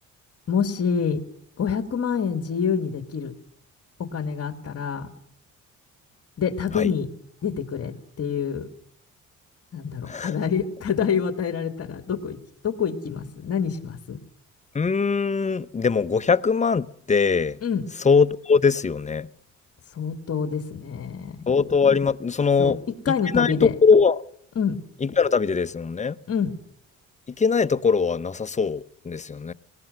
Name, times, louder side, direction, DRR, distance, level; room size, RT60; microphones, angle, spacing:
voice 1, 0.5-1.2 1.6-3.3 4.1-5.1 6.4-7.1 7.4-8.7 9.7-12.4 12.6-14.2 17.6-17.8 19.9-21.4 22.6-22.7 23.1-23.7 24.6-24.8 26.3-26.5, left 6 dB, 50° left, 2.1 m, -26 dB
voice 2, 10.0-10.3 14.7-17.6 18.0-19.3 21.5-22.8 23.3-24.2 25.0-26.2 27.4-29.5, left 5 dB, 25° left, 0.8 m, -21 dB
19.0 x 18.0 x 7.8 m
cardioid pair, 90°, 30 cm